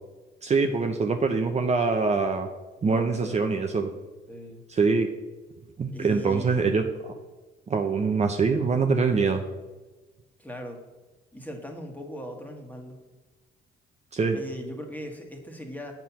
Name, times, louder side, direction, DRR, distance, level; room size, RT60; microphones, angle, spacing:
voice 1, 0.4-2.5 2.8-3.9 4.7-5.1 5.8-7.1 7.7-9.4 14.1-14.4, right 4 dB, 35° right, 4 dB, 0.7 m, -24 dB
voice 2, 2.8-3.6 4.3-4.6 5.9-6.7 10.4-10.8 11.3-13.0 14.3-15.9, equal, 10° left, 2 dB, 1.6 m, -39 dB
7.6 x 4.5 x 7.0 m, 1.2 s
cardioid pair, 90°, 20 cm